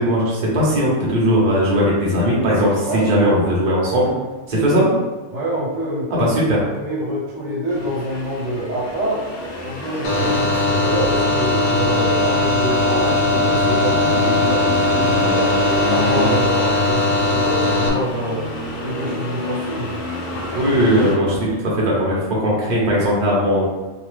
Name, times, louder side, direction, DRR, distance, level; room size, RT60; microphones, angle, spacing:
voice 1, 0.0-4.1 4.5-4.9 6.2-6.6 20.5-23.7, equal, 45° right, -5 dB, 0.8 m, -18 dB
voice 2, 2.9-3.6 5.3-6.3 6.7-9.2 9.6-18.5 18.8-19.9, right 1 dB, 80° right, -5 dB, 1.1 m, -26 dB
Accelerating revving vroom, 7.7-21.2, left 1 dB, 50° left, 0.6 m, -30 dB
sound 1, 10.0-17.9, left 2 dB, 85° left, 1.0 m, -19 dB
2.8 x 2.3 x 3.2 m, 1.2 s
omnidirectional pair, 1.2 m